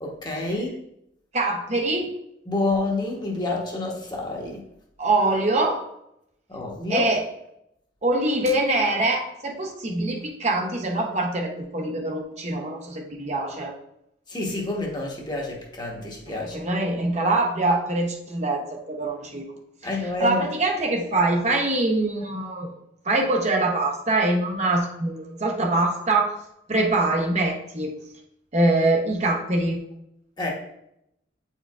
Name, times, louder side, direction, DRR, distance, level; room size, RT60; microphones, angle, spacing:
voice 1, 0.0-0.8 2.5-4.6 6.5-7.1 14.3-16.6 19.8-20.5 30.4-30.5, left 2 dB, 25° left, -1 dB, 1.0 m, -28 dB
voice 2, 1.3-2.1 5.0-5.8 6.9-7.3 8.0-13.7 16.3-19.4 20.2-22.7 23.0-26.3 26.7-27.9 28.5-29.8, right 2 dB, 40° right, 1 dB, 0.8 m, -24 dB
8.9 x 4.5 x 2.4 m, 0.80 s
head